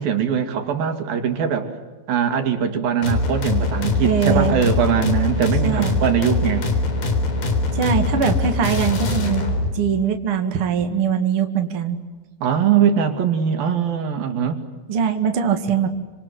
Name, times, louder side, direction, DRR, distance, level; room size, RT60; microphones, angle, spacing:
voice 1, 0.0-1.7 2.1-6.6 12.4-14.6, right 7 dB, 75° right, 7 dB, 4.1 m, -21 dB
sound 1, 3.0-9.7, left 2 dB, 75° left, 5.6 m, -22 dB
voice 2, 4.0-4.6 5.6-6.0 7.7-9.4 9.7-12.0 14.9-15.9, right 7 dB, 40° right, 5 dB, 2.6 m, -21 dB
29.0 x 26.0 x 7.8 m, 1.3 s
omnidirectional pair, 4.2 m